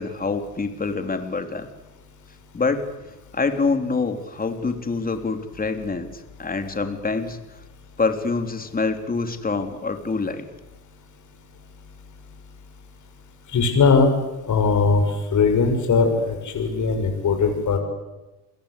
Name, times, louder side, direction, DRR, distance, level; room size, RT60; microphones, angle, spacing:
voice 1, 0.0-1.7 2.5-2.9 3.3-6.1 6.4-7.4 8.0-10.5, left 4 dB, 20° left, 7 dB, 3.4 m, -25 dB
voice 2, 13.5-14.1 14.5-17.8, left 4 dB, 40° left, 3 dB, 6.4 m, -19 dB
30.0 x 21.0 x 8.4 m, 1.0 s
hypercardioid pair, 75°, 48 cm